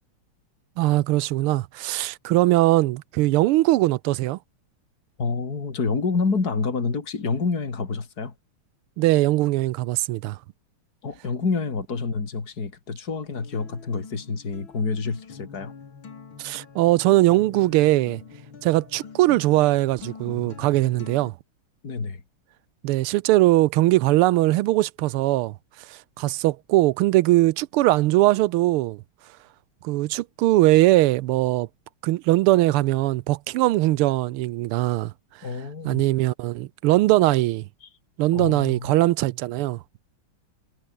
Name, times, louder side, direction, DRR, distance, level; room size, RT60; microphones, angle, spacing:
voice 1, 0.8-4.4 9.0-10.4 16.4-18.2 18.6-21.3 22.8-25.5 26.2-29.0 29.8-31.7 32.0-35.1 35.8-37.6 38.2-39.8, right 17 dB, 85° right, 1.5 m, -20 dB
voice 2, 5.2-8.3 11.0-15.7 21.8-22.2 35.4-36.1 37.8-37.9 38.3-39.0, left 4 dB, 45° left, 3.6 m, -28 dB
Acoustic guitar, 13.3-21.3, left 5 dB, 65° left, 3.4 m, -44 dB
omnidirectional pair, 2.4 m